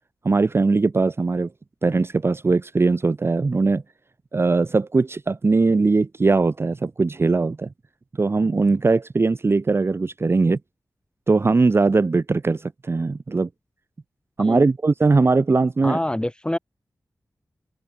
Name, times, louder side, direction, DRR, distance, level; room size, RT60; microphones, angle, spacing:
voice 1, 0.2-1.5 1.8-3.8 4.3-7.7 8.2-10.6 11.3-13.5 14.4-16.0, right 3 dB, 40° right, 0.5 m, -20 dB
voice 2, 15.8-16.6, left 1 dB, 15° left, 3.3 m, -25 dB
open air
cardioid pair, 60°, 7 cm